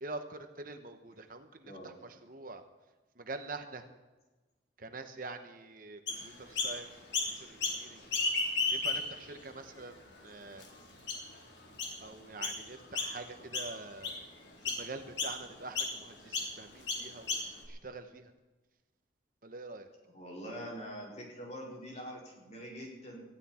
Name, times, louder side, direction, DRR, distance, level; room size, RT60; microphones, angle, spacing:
voice 1, 0.0-1.7 2.3-2.6 3.2-3.8 4.8-6.9 7.3-8.0 8.7-10.0 10.2-10.6 12.0-14.1 14.7-17.4 17.7-18.2 19.4-19.9, right 3 dB, 50° right, 7 dB, 1.1 m, -45 dB
voice 2, 1.6-1.9 12.0-12.2 20.0-23.2, equal, 35° left, -2 dB, 4.6 m, -44 dB
Chirp tweet, 6.1-6.7 7.1-7.8 8.1-9.3 9.8-9.9 10.6-10.7 11.1-11.4 11.8-12.0 12.4-12.6 12.9-13.3 13.5-14.2 14.6-14.8 15.2-15.3 15.8-15.9 16.3-16.5 16.9-17.7, left 3 dB, 75° left, 3.6 m, -33 dB
19.0 x 15.0 x 4.4 m, 1.2 s
head